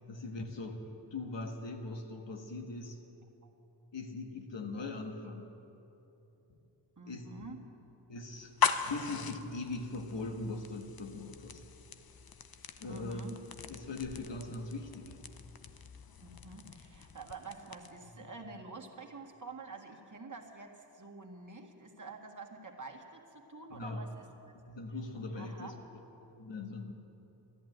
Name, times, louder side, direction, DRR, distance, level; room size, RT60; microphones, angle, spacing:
voice 1, 0.1-3.0 3.9-5.6 6.5-6.6 7.1-7.5 8.1-11.6 12.8-13.3 13.7-15.2 23.7-24.1 24.5-25.8 26.2-26.9, left 2 dB, 75° left, 4 dB, 1.5 m, -41 dB
voice 2, 7.0-7.6 12.9-13.4 16.2-24.3 25.4-25.8, right 3 dB, 45° right, 1 dB, 1.9 m, -48 dB
sound 1, 8.4-18.1, left 7 dB, 55° left, 0.8 m, -39 dB
13.5 x 11.0 x 9.3 m, 3.0 s
cardioid pair, 45°, 44 cm